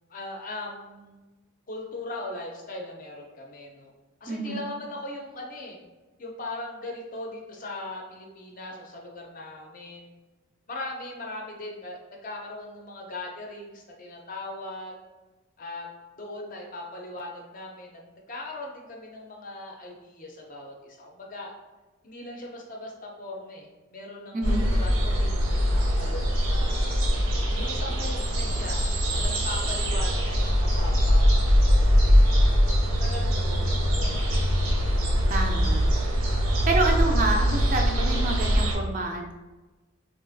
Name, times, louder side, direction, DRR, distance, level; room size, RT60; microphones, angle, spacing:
voice 1, 0.1-1.2 1.7-3.9 4.2-5.8 6.2-10.1 10.7-15.0 15.6-15.9 16.2-18.0 18.3-21.5 22.0-26.9 27.5-28.8 29.1-32.5 33.0-34.3, left 2 dB, 40° left, 0 dB, 0.5 m, -39 dB
voice 2, 4.3-4.7 24.3-24.6 35.3-35.8 36.6-39.3, right 2 dB, 35° right, 2 dB, 0.3 m, -28 dB
sound 1, 24.4-38.7, equal, 85° right, 0.6 m, -22 dB
3.8 x 2.4 x 2.5 m, 1.2 s
head